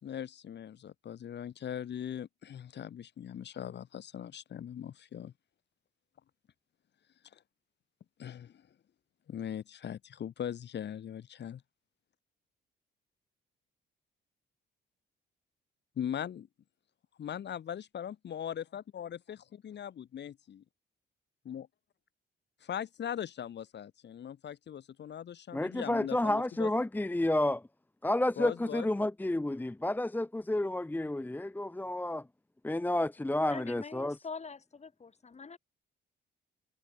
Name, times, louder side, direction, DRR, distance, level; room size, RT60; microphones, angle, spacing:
voice 1, 0.0-5.3 7.3-7.4 8.2-8.7 9.3-11.6 16.0-16.5 17.2-20.6 21.4-21.7 22.6-26.7 28.4-28.9, left 9 dB, 60° left, 4.3 m, -40 dB
voice 2, 25.5-27.6 28.0-32.2 32.6-34.2, left 1 dB, 10° left, 0.9 m, -30 dB
voice 3, 33.5-35.6, left 5 dB, 35° left, 6.5 m, -44 dB
cardioid pair, 90°, 20 cm